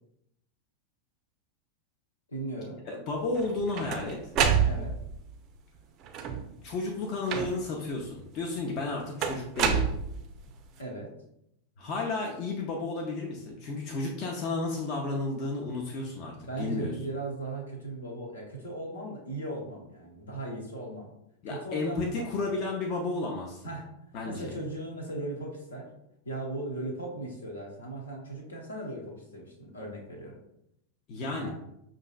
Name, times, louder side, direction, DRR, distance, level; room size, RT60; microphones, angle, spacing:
voice 1, 2.3-2.8 4.6-5.0 10.8-11.1 16.4-21.1 21.5-22.5 23.6-23.9 24.2-25.9 26.2-30.4 31.4-31.5, right 2 dB, 70° left, 0 dB, 0.9 m, -38 dB
voice 2, 2.9-4.2 6.6-9.9 11.8-16.9 21.4-23.6 24.1-24.5 31.1-31.5, left 3 dB, 40° left, 0 dB, 0.5 m, -32 dB
sound 1, 3.4-5.2 6.0-6.6 7.3-7.8 9.2-10.5, right 7 dB, 35° right, 0.4 m, -28 dB
5.5 x 2.5 x 2.3 m, 0.79 s
figure-of-eight pair, 90°, 0 cm